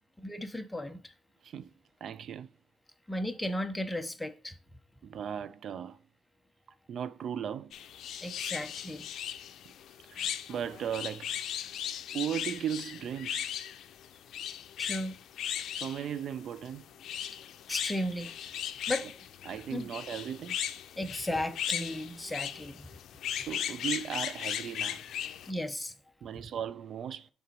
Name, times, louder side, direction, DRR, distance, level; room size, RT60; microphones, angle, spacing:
voice 1, 0.2-1.0 3.1-4.5 8.2-9.0 14.8-15.2 17.7-18.3 18.9-19.1 19.7-19.9 21.0-22.9 25.5-25.9, left 1 dB, 10° left, 0.8 m, -35 dB
voice 2, 2.0-2.5 5.0-6.0 6.9-7.7 10.1-11.3 12.1-13.5 15.7-16.8 19.5-20.6 23.5-25.0 26.2-27.3, right 9 dB, 65° right, 0.5 m, -37 dB
sound 1, 7.7-25.5, left 10 dB, 75° left, 0.5 m, -37 dB
6.7 x 4.0 x 4.6 m
cardioid pair, 90°, 0 cm